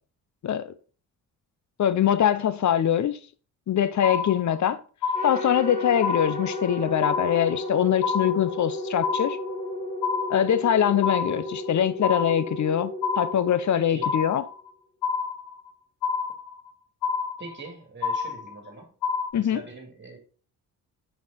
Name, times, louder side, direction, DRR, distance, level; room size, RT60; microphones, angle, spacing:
voice 1, 0.4-0.7 1.8-3.2 3.7-4.8 5.2-9.4 10.3-12.9 13.2-14.4 19.3-19.6, left 9 dB, 45° left, 0.7 m, -23 dB
sound 1, 4.0-4.7 5.0-5.7 6.0-6.7 7.0-7.7 8.0-8.7 9.0-9.7 10.0-10.7 11.0-11.7 12.0-12.7 13.0-13.7 14.0-14.7 15.0-15.7 16.0-16.7 17.0-17.7 18.0-18.7 19.0-19.3, left 5 dB, 75° left, 0.9 m, -28 dB
sound 2, 5.1-14.4, left 1 dB, 20° left, 3.5 m, -34 dB
voice 2, 13.7-14.2 17.4-18.9 19.3-20.2, right 3 dB, 30° right, 2.6 m, -42 dB
6.0 x 4.8 x 4.2 m
cardioid pair, 80°, 39 cm